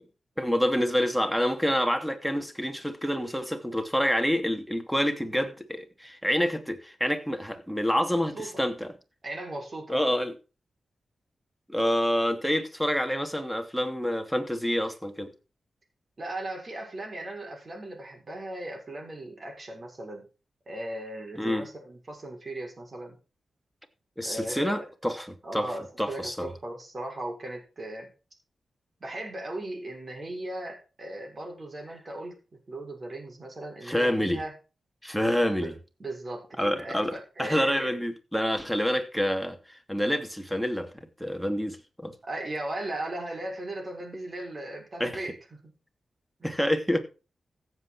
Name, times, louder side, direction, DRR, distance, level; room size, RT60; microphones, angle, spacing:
voice 1, 0.4-8.9 9.9-10.3 11.7-15.3 21.4-21.6 24.2-25.7 26.0-26.5 33.8-34.4 35.0-35.7 36.6-40.9 41.2-42.1 45.0-45.2 46.4-47.0, equal, ahead, 2.6 m, -27 dB
voice 2, 8.2-8.5 9.2-10.0 16.2-20.2 20.7-23.2 24.2-24.7 25.4-28.1 29.0-32.4 32.7-34.5 35.5-35.7 36.0-37.9 42.2-45.7, right 1 dB, 45° right, 6.4 m, -37 dB
15.0 x 8.2 x 4.5 m
cardioid pair, 60°, 0 cm